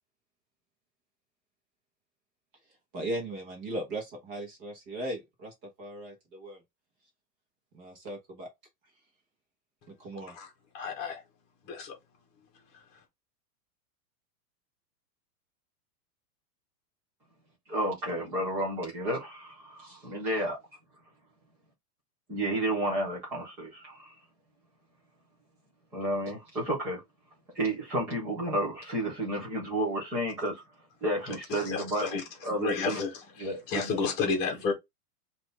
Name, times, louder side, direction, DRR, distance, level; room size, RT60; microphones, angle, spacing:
voice 1, 2.9-6.6 7.7-8.5 9.9-10.4, right 1 dB, 25° right, 1.1 m, -38 dB
voice 2, 10.7-11.2 11.7-11.9 31.3-32.2 32.6-33.1 33.4-34.7, left 5 dB, 20° left, 1.0 m, -31 dB
voice 3, 17.7-20.6 22.3-24.1 25.9-27.0 27.5-30.6 31.0-33.0 33.4-34.0, right 1 dB, 5° right, 0.4 m, -31 dB
5.8 x 2.6 x 3.2 m
supercardioid pair, 170°, 48 cm